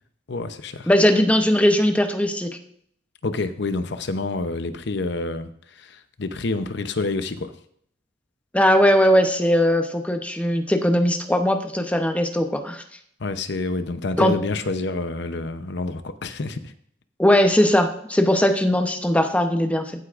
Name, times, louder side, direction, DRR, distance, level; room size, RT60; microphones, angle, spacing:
voice 1, 0.3-0.9 3.2-7.5 13.2-16.7, left 3 dB, 65° left, 10 dB, 0.8 m, -28 dB
voice 2, 0.9-2.6 8.5-12.8 14.2-14.4 17.2-19.8, equal, 5° left, 5 dB, 0.8 m, -19 dB
14.5 x 8.0 x 2.5 m, 0.67 s
head